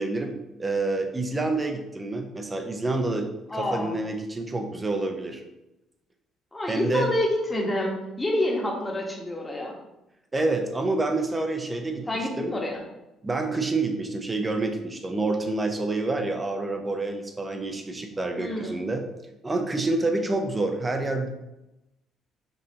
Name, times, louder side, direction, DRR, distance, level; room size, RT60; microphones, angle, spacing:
voice 1, 0.0-5.4 6.7-7.1 10.3-12.5 13.2-19.0 19.4-21.3, right 2 dB, 25° right, 5 dB, 0.7 m, -28 dB
voice 2, 3.5-3.9 6.5-9.7 12.1-12.8 18.4-18.8, left 1 dB, 20° left, -1 dB, 1.2 m, -28 dB
5.3 x 2.7 x 2.8 m, 0.93 s
supercardioid pair, 75°, 0 cm